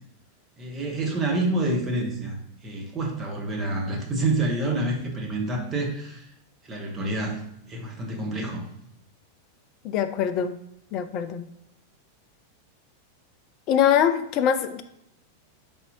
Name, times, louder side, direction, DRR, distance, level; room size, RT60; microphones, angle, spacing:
voice 1, 0.6-2.4 2.6-6.2 6.6-7.4 7.7-8.7, right 2 dB, 25° right, 0 dB, 1.0 m, -27 dB
voice 2, 9.8-10.6 10.9-11.4 13.7-14.8, left 9 dB, 40° left, 9 dB, 0.3 m, -23 dB
4.1 x 3.5 x 2.8 m, 0.77 s
figure-of-eight pair, 90°, 0 cm